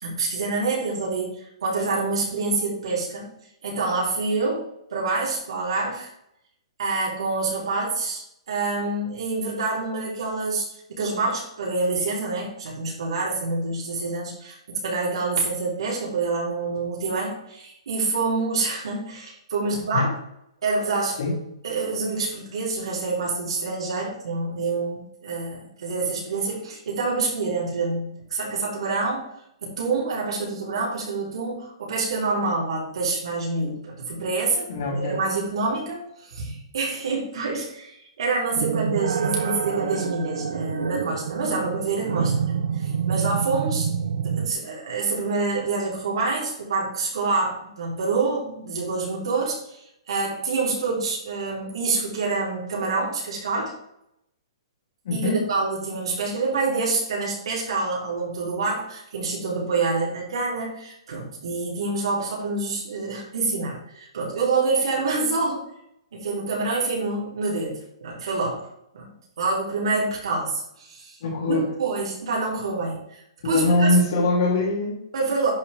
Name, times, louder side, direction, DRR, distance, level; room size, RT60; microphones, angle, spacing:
voice 1, 0.0-3.3 3.6-4.6 4.9-6.1 6.8-20.1 20.6-21.2 21.6-29.3 29.6-43.9 44.2-49.8 50.1-53.7 55.1-65.6 66.1-68.6 68.9-69.1 69.4-71.2 71.5-73.2 73.4-73.9 75.1-75.5, right 3 dB, 65° right, -3 dB, 3.4 m, -27 dB
voice 2, 34.7-35.2 55.0-55.4 71.2-71.7 73.4-75.0, left 2 dB, 45° left, -4 dB, 3.3 m, -22 dB
sound 1, 38.6-44.5, right 7 dB, 90° right, 0.6 m, -27 dB
10.5 x 4.9 x 3.6 m, 0.78 s
hypercardioid pair, 180°, 3 cm